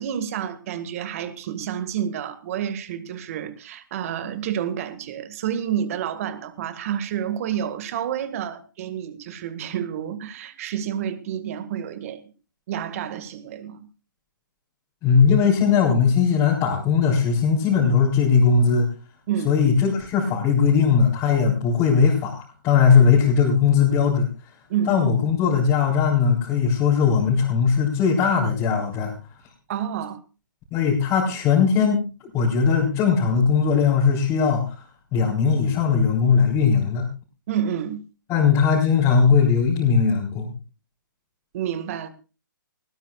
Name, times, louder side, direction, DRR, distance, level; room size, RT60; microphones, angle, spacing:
voice 1, 0.0-12.3 12.7-13.9 19.3-19.5 24.7-25.0 29.7-30.2 37.5-38.0 41.5-42.1, right 9 dB, 40° right, 12 dB, 1.9 m, -29 dB
voice 2, 15.0-18.9 19.4-24.3 24.9-29.1 30.7-32.1 32.3-34.7 35.1-37.1 38.3-40.5, left 6 dB, 25° left, -6 dB, 4.0 m, -19 dB
19.5 x 17.5 x 2.4 m, 0.32 s
figure-of-eight pair, 135°, 11 cm